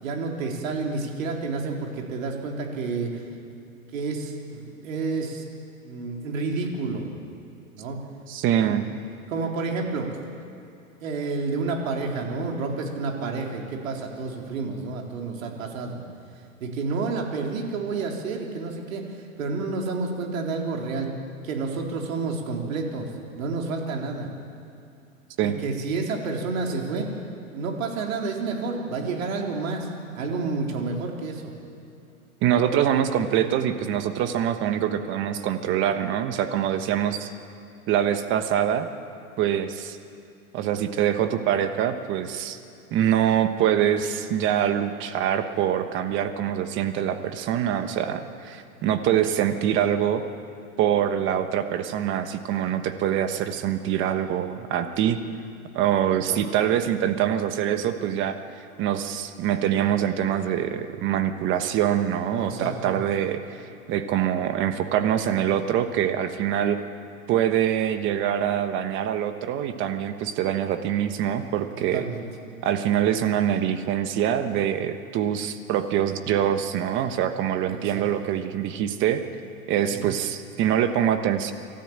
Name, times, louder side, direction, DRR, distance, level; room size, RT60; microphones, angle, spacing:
voice 1, 0.0-3.2 3.9-5.4 5.8-7.1 7.7-8.0 8.6-8.8 9.3-10.1 11.0-16.0 16.6-19.1 19.4-21.1 21.4-23.1 23.4-24.3 25.4-27.1 27.5-29.9 30.2-31.4 32.5-32.7 56.3-56.4 62.4-63.0 71.8-72.2 77.7-78.0 79.9-80.1, right 4 dB, 65° right, 1 dB, 4.0 m, -30 dB
voice 2, 8.3-8.9 25.4-25.6 32.4-37.3 37.9-38.9 39.4-40.0 40.5-42.6 42.9-50.2 50.8-55.2 55.7-58.4 58.8-63.6 63.9-66.8 67.3-72.0 72.6-79.2 79.7-81.5, right 10 dB, 25° right, 8 dB, 1.2 m, -24 dB
25.0 x 13.5 x 8.9 m, 2.6 s
hypercardioid pair, 140°, 43 cm